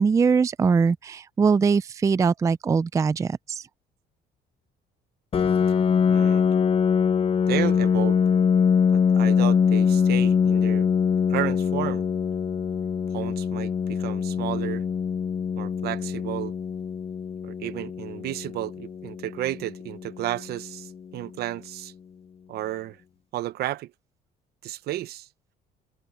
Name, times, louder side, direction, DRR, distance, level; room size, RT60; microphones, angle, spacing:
voice 1, 0.0-3.6, right 5 dB, 20° right, 0.3 m, -22 dB
Piano, 5.3-20.7, left 6 dB, 35° left, 0.7 m, -23 dB
voice 2, 6.1-6.4 7.5-8.2 9.1-10.9 11.3-12.1 13.1-14.8 15.6-16.5 17.4-21.9 22.5-23.0 23.3-23.9 24.6-25.3, right 14 dB, 70° right, 0.9 m, -32 dB
cardioid pair, 110°, 17 cm